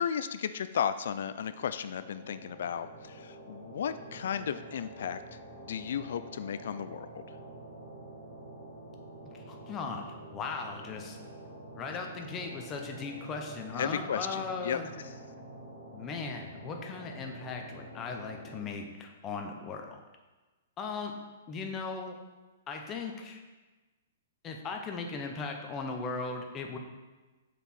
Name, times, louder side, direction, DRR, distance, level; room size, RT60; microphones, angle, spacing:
voice 1, 0.0-7.4 13.7-14.8 15.0-15.2, left 8 dB, 70° left, 12 dB, 0.3 m, -34 dB
sound 1, 1.8-18.6, right 1 dB, 35° right, 2.3 m, -47 dB
voice 2, 9.2-11.2 11.7-14.9 15.9-20.0 20.8-21.2 21.5-22.2 22.7-23.4 24.4-26.8, left 4 dB, 20° left, 3 dB, 0.8 m, -38 dB
6.7 x 4.7 x 4.2 m, 1.2 s
hypercardioid pair, 155°, 0 cm